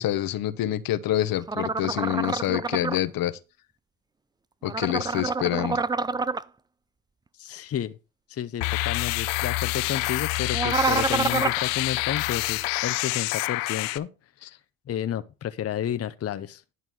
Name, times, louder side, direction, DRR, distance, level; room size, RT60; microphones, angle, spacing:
voice 1, 0.0-3.4 4.6-5.8, left 13 dB, 60° left, 1.0 m, -27 dB
sound 1, 1.5-3.0 4.7-6.4 10.5-11.6, right 4 dB, 10° right, 0.4 m, -27 dB
voice 2, 7.4-8.0 8.3-14.1 14.9-16.6, left 10 dB, 40° left, 0.7 m, -31 dB
sound 2, 8.6-14.0, left 20 dB, 85° left, 0.7 m, -27 dB
11.0 x 4.0 x 6.2 m
supercardioid pair, 75°, 39 cm